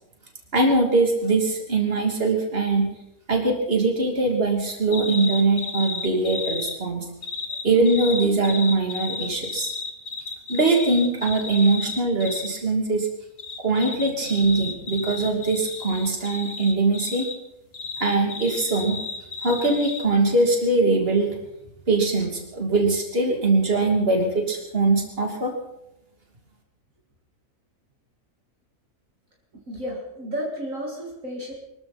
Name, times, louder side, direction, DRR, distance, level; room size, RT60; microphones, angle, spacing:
voice 1, 0.5-2.9 3.3-7.1 7.6-9.7 10.5-13.1 13.6-17.3 18.0-19.0 19.4-21.4 21.9-25.5, right 3 dB, 40° right, 2 dB, 3.0 m, -22 dB
sound 1, 4.9-6.8 7.2-12.5 13.4-17.4 17.7-20.1, left 4 dB, 45° left, 1.6 m, -33 dB
voice 2, 29.7-31.5, equal, 60° right, 0 dB, 2.7 m, -32 dB
23.5 x 14.0 x 4.2 m, 0.81 s
omnidirectional pair, 1.6 m